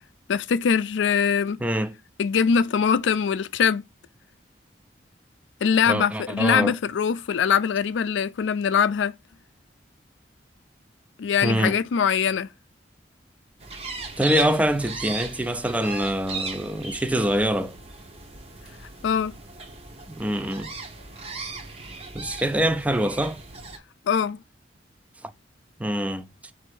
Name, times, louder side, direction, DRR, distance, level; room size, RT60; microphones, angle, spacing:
voice 1, 0.3-1.6 2.2-3.8 5.6-9.1 11.2-12.5 19.0-19.4 24.1-24.4, left 6 dB, 85° left, 0.4 m, -22 dB
voice 2, 1.6-2.0 5.9-6.8 11.4-11.8 14.2-17.8 20.1-20.7 22.1-23.4 25.2-25.3 25.8-26.5, right 1 dB, 10° right, 0.3 m, -25 dB
sound 1, 13.6-23.8, right 3 dB, 35° right, 0.7 m, -38 dB
4.2 x 2.6 x 4.6 m
head